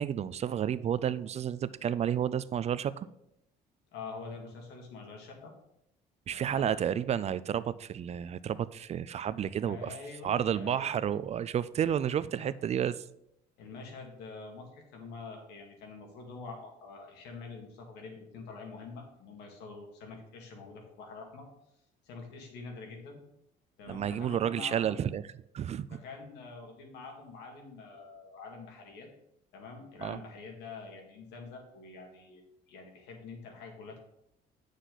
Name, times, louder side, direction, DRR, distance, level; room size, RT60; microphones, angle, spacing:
voice 1, 0.0-3.1 6.3-10.0 10.2-13.0 23.9-25.2 25.5-26.0 30.0-30.2, right 9 dB, 40° right, 17 dB, 0.4 m, -31 dB
voice 2, 3.9-5.5 6.3-6.7 9.6-10.9 12.4-12.5 13.6-21.5 22.0-23.2 23.8-24.9 25.9-29.1 29.5-32.4 32.7-34.0, left 4 dB, 85° left, 2 dB, 2.2 m, -46 dB
9.8 x 6.5 x 3.9 m, 0.79 s
cardioid pair, 110°, 17 cm